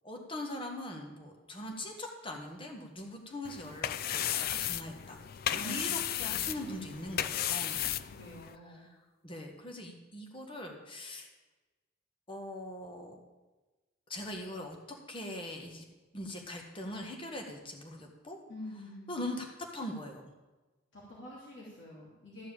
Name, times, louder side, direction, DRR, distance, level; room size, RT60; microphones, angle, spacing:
voice 1, 0.0-5.2 5.5-7.8 8.8-8.9 9.2-11.3 12.3-13.2 14.1-15.8 16.1-18.4 19.1-20.3, left 1 dB, 30° left, 2 dB, 1.5 m, -41 dB
sound 1, 3.4-8.6, left 11 dB, 50° left, 0.4 m, -34 dB
voice 2, 5.6-7.0 8.0-8.8 18.5-19.2 20.9-22.4, left 1 dB, 65° left, -6 dB, 2.9 m, -48 dB
13.5 x 4.6 x 8.9 m, 1.2 s
head